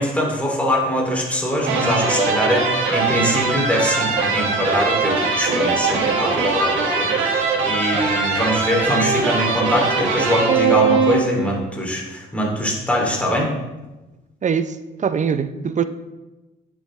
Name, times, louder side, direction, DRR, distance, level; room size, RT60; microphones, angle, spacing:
voice 1, 0.0-13.5, equal, 5° left, -2 dB, 2.5 m, -23 dB
sound 1, 1.6-11.6, right 4 dB, 85° right, 1.7 m, -21 dB
voice 2, 14.4-15.8, right 7 dB, 40° right, 12 dB, 0.5 m, -22 dB
10.0 x 7.4 x 3.1 m, 1.1 s
cardioid pair, 90°, 20 cm